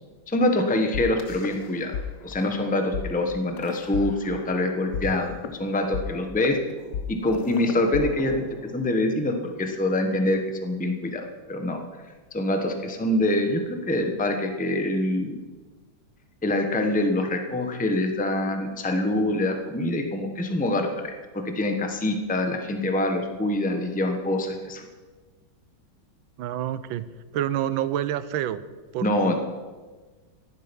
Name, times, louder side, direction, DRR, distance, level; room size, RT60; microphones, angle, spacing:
voice 1, 0.3-1.9 2.2-6.6 7.1-11.8 12.3-15.4 16.4-24.8 29.0-29.4, left 1 dB, 5° left, 4 dB, 1.0 m, -25 dB
sound 1, 0.9-2.0 2.3-2.5 2.9-3.0 3.6-4.6 4.9-8.9, left 7 dB, 65° left, 1.4 m, -34 dB
voice 2, 26.4-27.1 27.3-28.6 28.9-29.4, right 11 dB, 80° right, 14 dB, 1.5 m, -28 dB
15.0 x 11.5 x 5.4 m, 1.3 s
omnidirectional pair, 2.2 m